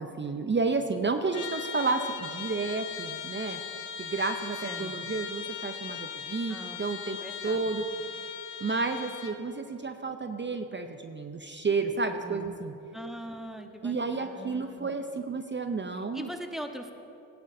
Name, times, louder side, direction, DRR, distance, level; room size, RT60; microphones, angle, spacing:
voice 1, 0.0-3.6 4.0-7.2 7.4-7.8 8.6-12.7 13.8-16.3, right 4 dB, 25° right, 7 dB, 0.6 m, -31 dB
Trumpet, 1.3-9.4, left 8 dB, 75° left, 0.9 m, -39 dB
voice 2, 4.6-5.0 6.5-6.8 7.1-7.8 12.1-12.5 12.9-14.9 15.9-16.9, equal, ahead, 5 dB, 1.0 m, -42 dB
17.0 x 10.5 x 2.7 m, 2.8 s
supercardioid pair, 55°, 45 cm